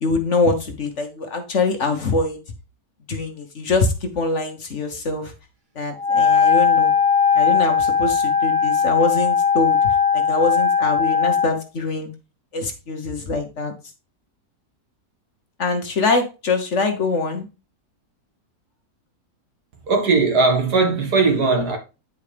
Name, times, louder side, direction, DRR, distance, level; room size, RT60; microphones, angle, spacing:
voice 1, 0.0-2.4 3.1-5.3 5.7-6.9 7.3-9.8 10.1-12.1 12.5-13.7 15.6-17.5, left 3 dB, 50° left, 1.3 m, -23 dB
Wind instrument woodwind instrument, 6.0-11.6, left 6 dB, 30° right, 1.4 m, -18 dB
voice 2, 19.9-21.8, right 3 dB, 75° right, 2.2 m, -18 dB
9.9 x 4.7 x 3.4 m
omnidirectional pair, 1.7 m